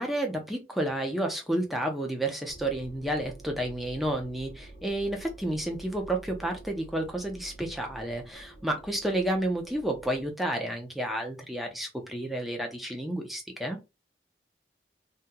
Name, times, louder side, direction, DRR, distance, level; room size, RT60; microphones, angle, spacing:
voice 1, 0.0-13.8, right 1 dB, ahead, 0.6 m, -31 dB
sound 1, 2.5-10.3, right 1 dB, 40° left, 0.8 m, -49 dB
2.8 x 2.2 x 3.6 m
head